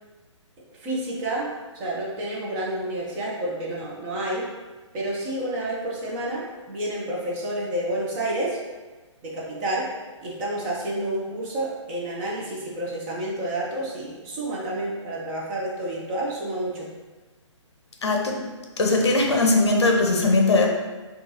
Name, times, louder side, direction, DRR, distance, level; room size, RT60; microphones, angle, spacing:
voice 1, 0.8-1.5 1.7-4.5 4.9-8.6 9.2-9.9 10.2-16.9, right 1 dB, 20° right, -5 dB, 0.6 m, -29 dB
voice 2, 18.0-18.4 18.8-20.7, left 2 dB, 60° left, 1 dB, 0.6 m, -20 dB
4.5 x 2.3 x 2.7 m, 1.2 s
figure-of-eight pair, 135°, 16 cm